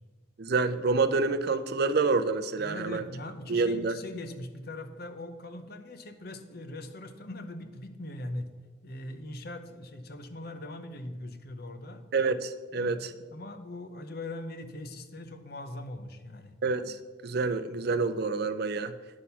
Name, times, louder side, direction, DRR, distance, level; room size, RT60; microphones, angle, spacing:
voice 1, 0.4-3.0 3.5-4.0 12.1-13.1 16.6-17.0 17.2-18.9, right 4 dB, 50° right, 12 dB, 0.5 m, -27 dB
voice 2, 2.6-8.5 8.8-12.0 12.7-16.6, left 1 dB, 50° left, 8 dB, 0.8 m, -41 dB
9.7 x 6.2 x 5.6 m, 1.4 s
head